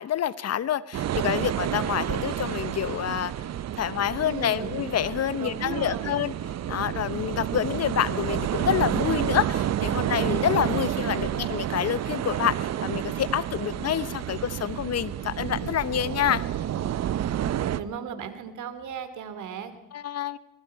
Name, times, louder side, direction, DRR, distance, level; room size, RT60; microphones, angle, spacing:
voice 1, 0.0-3.3 3.8-6.3 6.7-16.4 19.9-20.4, left 10 dB, 55° left, 17 dB, 0.9 m, -27 dB
sound 1, 0.9-17.8, right 11 dB, 60° right, 0.8 m, -30 dB
voice 2, 4.2-4.8 5.4-6.1 17.7-19.8, right 7 dB, 75° right, 10 dB, 2.5 m, -36 dB
26.0 x 21.5 x 4.7 m, 1.0 s
cardioid pair, 90°, 30 cm